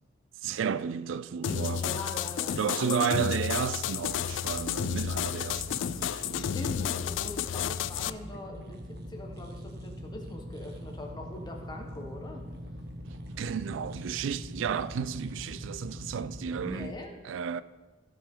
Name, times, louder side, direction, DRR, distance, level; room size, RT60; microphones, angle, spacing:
voice 1, 0.4-2.0 2.6-6.5 13.0-16.9 17.2-17.6, right 7 dB, 75° right, 0.4 m, -32 dB
sound 1, 1.4-8.1, left 9 dB, 65° left, 0.3 m, -32 dB
voice 2, 1.7-3.0 6.3-12.4 16.6-17.1, left 1 dB, 20° left, 1.3 m, -42 dB
sound 2, 4.0-16.9, equal, 55° right, 1.0 m, -43 dB
15.5 x 6.1 x 3.8 m
head